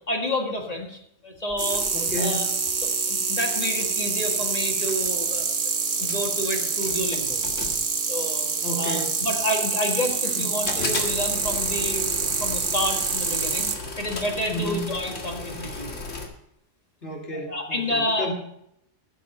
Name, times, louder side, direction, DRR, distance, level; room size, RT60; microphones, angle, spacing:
voice 1, 0.1-1.9 2.2-2.5 2.8-5.5 6.0-7.4 8.1-8.5 8.8-13.7 14.0-15.9 17.3-18.3, left 1 dB, 30° left, 2 dB, 1.9 m, -29 dB
sound 1, 1.5-3.0 3.2-4.0 4.6-4.7 4.9-5.4 5.9-6.4 6.8-8.6 9.2-10.3 10.7-16.3, left 3 dB, 85° left, 2.2 m, -36 dB
sound 2, 1.6-13.8, right 5 dB, 80° right, 1.6 m, -26 dB
voice 2, 1.9-2.5 8.6-9.1 10.3-10.4 14.5-14.8 17.0-18.3, equal, 70° left, -2 dB, 3.1 m, -31 dB
15.0 x 7.6 x 5.4 m, 0.76 s
omnidirectional pair, 1.2 m